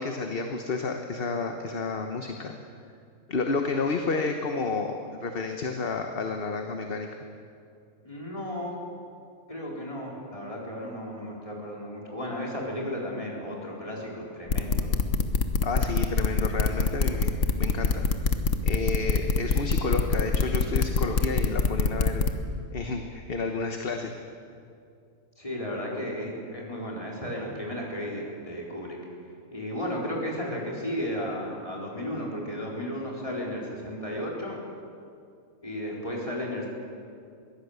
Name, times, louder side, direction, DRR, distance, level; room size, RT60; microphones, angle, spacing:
voice 1, 0.0-2.5 3.3-7.1 15.6-17.3 17.6-18.0 18.6-22.2 22.7-24.1, left 4 dB, 45° left, 5 dB, 1.3 m, -30 dB
voice 2, 8.0-8.8 9.5-14.9 25.4-29.0 29.5-34.6 35.6-36.7, equal, 25° left, -3 dB, 4.3 m, -34 dB
sound 1, 14.5-22.3, left 4 dB, 70° left, 1.5 m, -24 dB
22.0 x 16.5 x 8.1 m, 2.4 s
omnidirectional pair, 1.4 m